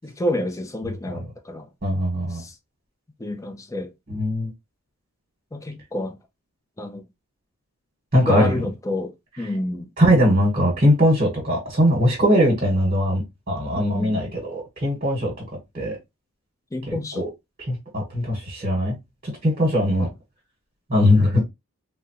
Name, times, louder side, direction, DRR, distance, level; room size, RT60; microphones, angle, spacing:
voice 1, 0.0-1.7 2.3-2.5 3.2-3.9 5.5-6.2 6.8-7.0 8.3-9.9 13.7-14.2 16.7-17.3, left 1 dB, 15° left, 0.4 m, -29 dB
voice 2, 1.8-2.4 4.1-4.5 8.1-8.5 10.0-15.3 15.7-16.0 16.9-17.3 17.7-19.0 19.2-20.1 20.9-21.5, equal, 35° right, 1.2 m, -20 dB
3.6 x 2.1 x 2.7 m
head